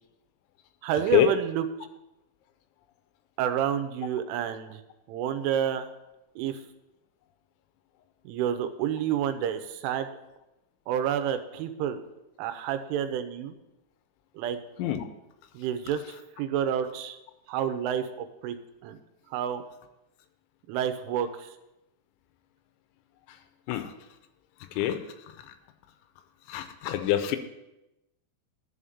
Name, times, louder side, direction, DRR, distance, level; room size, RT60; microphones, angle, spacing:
voice 1, 0.8-1.7 3.4-4.8 5.1-5.9 6.4-6.6 8.2-10.1 10.9-12.0 12.4-13.6 14.3-14.6 15.5-17.2 17.5-18.1 18.4-18.6 18.8-19.0 19.3-19.6 20.7-21.5, right 9 dB, 85° right, 9 dB, 3.2 m, -29 dB
voice 2, 26.5-27.4, left 11 dB, 85° left, 9 dB, 3.0 m, -25 dB
11.5 x 5.1 x 6.9 m, 0.94 s
omnidirectional pair, 5.5 m